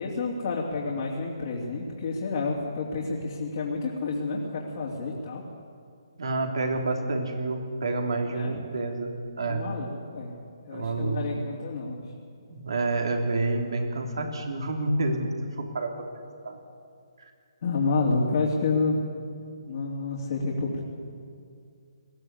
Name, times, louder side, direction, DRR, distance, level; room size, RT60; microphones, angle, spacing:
voice 1, 0.0-5.4 8.3-8.5 9.4-10.3 10.7-12.0 17.6-19.0 19.6-20.8, left 3 dB, 50° left, -3 dB, 3.3 m, -29 dB
voice 2, 6.2-9.1 9.4-9.6 10.7-11.2 12.5-16.6, right 2 dB, 65° right, 3 dB, 3.4 m, -29 dB
20.5 x 15.0 x 8.4 m, 2.3 s
figure-of-eight pair, 140°, 3 cm